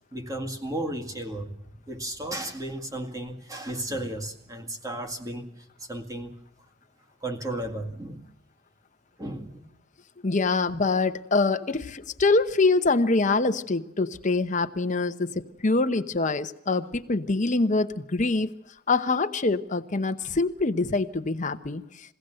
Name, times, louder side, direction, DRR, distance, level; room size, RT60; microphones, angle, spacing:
voice 1, 0.1-1.6 1.9-5.5 5.8-6.3 7.2-8.2 9.2-9.6 10.7-10.8, right 1 dB, 20° right, 3 dB, 2.0 m, -34 dB
voice 2, 10.2-18.5 18.9-21.8, left 3 dB, 40° left, 9 dB, 0.9 m, -24 dB
22.5 x 16.5 x 7.8 m, 0.80 s
head